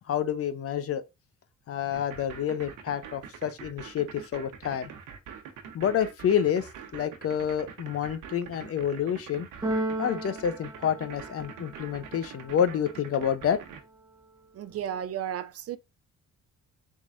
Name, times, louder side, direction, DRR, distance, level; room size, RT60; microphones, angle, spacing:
voice 1, 0.1-1.0 1.7-4.9 5.7-9.5 10.0-13.6, left 8 dB, 50° left, 0.6 m, -28 dB
sound 1, 1.9-13.8, right 7 dB, 90° right, 1.0 m, -44 dB
Keyboard (musical), 9.6-11.7, right 1 dB, 10° right, 0.7 m, -33 dB
voice 2, 14.5-15.8, right 9 dB, 50° right, 0.5 m, -33 dB
4.1 x 3.7 x 2.5 m
cardioid pair, 90°, 30 cm